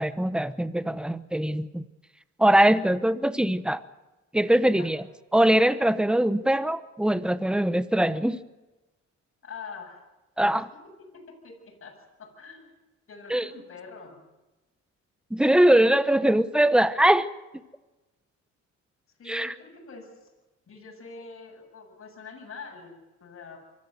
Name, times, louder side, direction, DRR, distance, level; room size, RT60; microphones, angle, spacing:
voice 1, 0.0-1.8 2.4-3.8 4.3-5.0 5.3-8.4 10.4-10.7 13.3-13.5 15.3-17.3 19.3-19.5, right 1 dB, 5° right, 14 dB, 1.0 m, -22 dB
voice 2, 9.4-10.1 10.6-10.7 11.1-12.7 13.1-14.2 19.2-20.3 20.7-23.6, left 4 dB, 45° left, 1 dB, 8.0 m, -44 dB
24.5 x 14.0 x 7.9 m, 1.1 s
cardioid pair, 90°, 30 cm